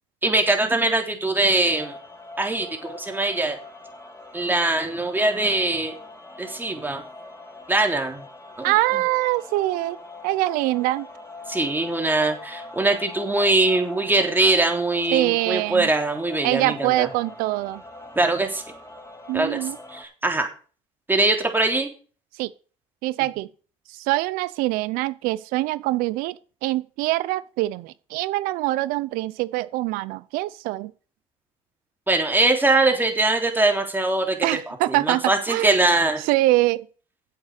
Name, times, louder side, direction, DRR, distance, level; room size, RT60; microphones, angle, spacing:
voice 1, 0.2-2.0 2.4-3.6 4.3-6.0 6.4-7.0 7.7-8.2 8.6-9.0 11.5-17.1 18.1-18.6 19.3-19.6 19.9-20.5 21.1-21.9 32.1-34.4 34.7-36.2, right 2 dB, 15° right, 3.4 m, -22 dB
sound 1, 1.6-20.0, left 2 dB, 20° left, 3.7 m, -42 dB
voice 2, 8.6-10.0 10.2-11.1 15.1-15.9 16.4-17.8 19.3-19.8 22.4-22.5 23.0-23.5 23.9-26.3 26.6-30.9 34.4-35.7 36.3-36.9, right 18 dB, 85° right, 0.7 m, -24 dB
9.6 x 8.0 x 6.7 m
supercardioid pair, 80°, 14 cm